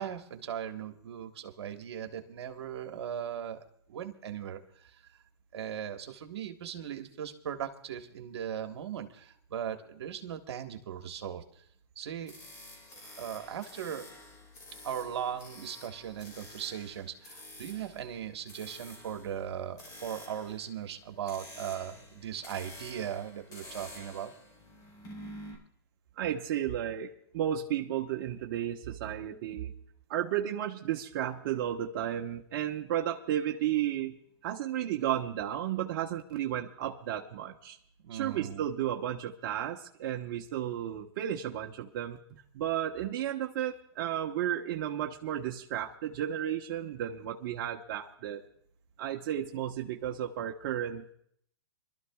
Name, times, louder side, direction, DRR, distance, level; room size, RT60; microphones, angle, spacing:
voice 1, 0.0-3.6 3.9-5.0 5.5-11.4 11.9-12.3 12.9-14.1 14.8-24.3 38.0-38.7, right 9 dB, 75° right, 5 dB, 1.5 m, -38 dB
sound 1, 12.3-25.5, left 1 dB, 25° left, 4.9 m, -50 dB
voice 2, 26.2-29.7 30.1-34.1 34.4-37.8 38.1-42.2 42.5-48.4 49.0-51.1, right 11 dB, 50° right, 1 dB, 1.1 m, -33 dB
26.5 x 12.5 x 2.4 m, 0.68 s
hypercardioid pair, 145°, 14 cm